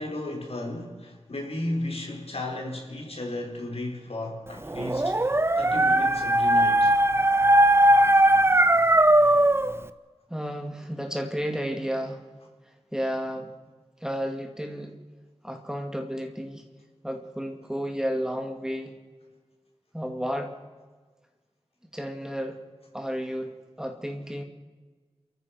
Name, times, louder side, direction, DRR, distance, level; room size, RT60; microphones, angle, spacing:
voice 1, 0.0-5.2 5.6-6.9, left 1 dB, 65° left, 4.9 m, -34 dB
Dog, 4.7-9.7, right 1 dB, 20° right, 0.9 m, -19 dB
voice 2, 10.3-12.2 12.9-13.5 14.0-15.0 15.4-16.6 17.0-18.9 19.9-20.6 21.9-22.6 22.9-24.4, equal, 5° right, 2.3 m, -32 dB
30.0 x 14.0 x 6.1 m
wide cardioid pair, 80°, 11 cm